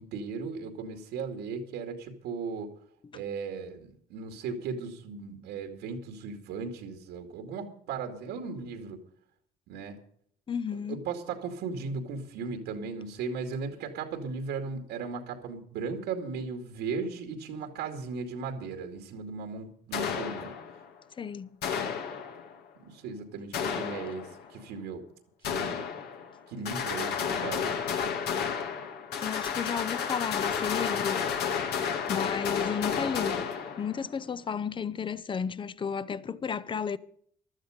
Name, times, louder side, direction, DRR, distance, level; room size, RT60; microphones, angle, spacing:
voice 1, 0.0-2.7 3.1-9.0 9.7-10.0 10.7-20.5 22.8-24.3 24.5-25.0 25.4-25.9 26.5-27.7, right 5 dB, 85° right, 2.3 m, -37 dB
voice 2, 10.5-11.0 21.2-21.5 29.2-31.2 32.1-33.4 33.8-37.0, left 6 dB, 30° left, 0.7 m, -33 dB
sound 1, 19.9-20.9 21.6-22.6 23.5-24.5 25.4-26.4 26.6-34.2, left 7 dB, 75° left, 2.1 m, -32 dB
15.5 x 12.5 x 5.1 m
cardioid pair, 110°, 17 cm